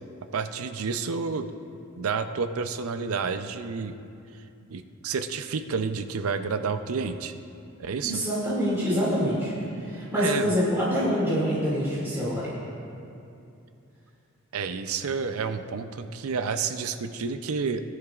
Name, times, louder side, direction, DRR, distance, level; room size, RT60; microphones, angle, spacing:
voice 1, 0.3-1.5 2.0-4.0 4.7-7.3 7.8-8.2 10.1-10.5 14.5-17.8, right 5 dB, 85° right, 9 dB, 0.5 m, -30 dB
voice 2, 8.0-9.5 9.8-12.5, equal, 10° right, -9 dB, 2.3 m, -26 dB
19.0 x 9.7 x 2.4 m, 2.6 s
head